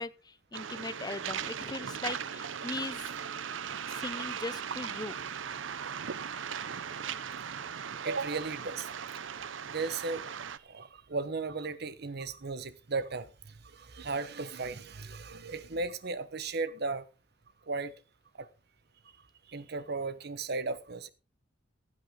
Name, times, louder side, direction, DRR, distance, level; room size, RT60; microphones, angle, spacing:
voice 1, 0.0-3.1 3.9-5.2, left 3 dB, 20° left, 0.6 m, -39 dB
Waves surf, 0.5-10.6, right 7 dB, 80° right, 0.7 m, -38 dB
voice 2, 8.0-9.0 9.4-17.1 17.7-17.9 18.4-18.5 19.5-21.1, right 3 dB, 55° right, 1.0 m, -36 dB
15.5 x 8.9 x 3.7 m
head